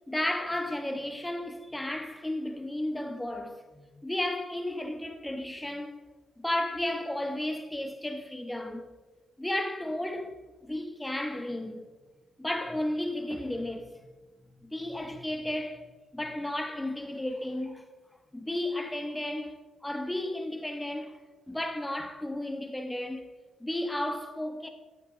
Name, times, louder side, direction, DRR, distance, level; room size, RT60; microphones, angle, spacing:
voice 1, 0.1-6.0 6.4-8.9 9.4-10.4 10.6-11.9 12.4-14.0 14.4-17.8 18.3-21.2 21.5-23.3 23.6-24.7, left 1 dB, 10° left, 1.4 m, -33 dB
14.0 x 8.6 x 4.0 m
cardioid pair, 90°, 0 cm